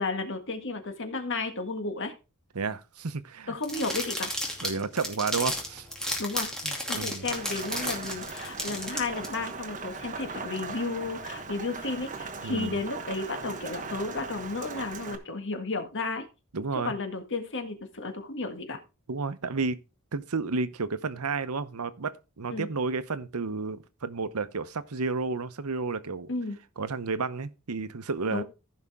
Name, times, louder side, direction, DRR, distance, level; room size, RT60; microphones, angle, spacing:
voice 1, 0.0-2.1 3.5-4.4 6.2-6.5 6.9-16.2 16.8-18.8 22.5-22.7 26.3-26.6 28.3-28.4, left 3 dB, 60° left, 1.8 m, -33 dB
voice 2, 2.5-3.6 4.6-5.9 6.6-7.2 12.4-12.8 16.5-16.9 19.1-19.8 20.1-26.3 26.8-28.4, right 4 dB, 85° right, 0.9 m, -31 dB
sound 1, 3.6-9.3, equal, 5° left, 2.6 m, -33 dB
Rain, 7.2-15.2, right 4 dB, 35° right, 1.2 m, -39 dB
15.0 x 5.6 x 3.6 m
head